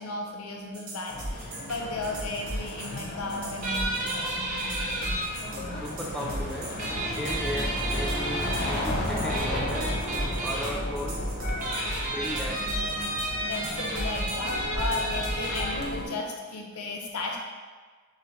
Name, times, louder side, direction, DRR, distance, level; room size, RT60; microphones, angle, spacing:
voice 1, 0.0-4.3 13.5-17.4, left 3 dB, 85° left, 0 dB, 0.7 m, -35 dB
sound 1, 0.7-15.6, right 1 dB, 75° right, 1.0 m, -37 dB
sound 2, 1.1-16.1, left 1 dB, 45° left, 0.7 m, -34 dB
sound 3, 3.6-5.2 6.8-8.9 9.3-10.7 11.5-15.7, right 2 dB, 35° right, 0.7 m, -32 dB
voice 2, 5.7-6.7 7.1-9.9 10.4-11.3 12.0-12.9, equal, ahead, -4 dB, 0.5 m, -36 dB
6.4 x 2.2 x 3.1 m, 1.5 s
head